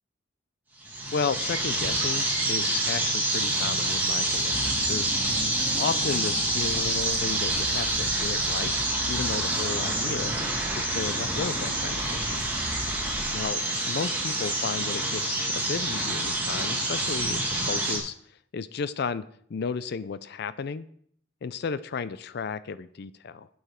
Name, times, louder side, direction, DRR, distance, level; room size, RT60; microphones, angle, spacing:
sound 1, 0.8-18.0, right 2 dB, 10° right, 1.9 m, -27 dB
voice 1, 1.1-5.4 5.8-8.7 9.0-10.3 10.7-12.4 13.3-13.6 13.9-17.4 17.7-18.1 18.5-19.2 19.5-20.9 21.4-23.5, left 5 dB, 60° left, 15 dB, 0.4 m, -33 dB
Car / Engine, 4.5-13.7, equal, 35° right, 2.2 m, -38 dB
8.0 x 7.2 x 4.3 m, 0.64 s
head